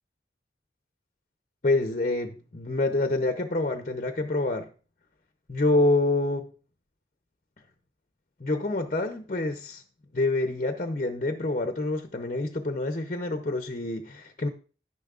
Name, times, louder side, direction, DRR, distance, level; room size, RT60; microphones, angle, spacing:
voice 1, 1.6-4.7 5.5-6.4 8.4-9.8 10.1-14.5, left 2 dB, 40° left, 0.7 m, -27 dB
11.0 x 10.0 x 2.5 m
head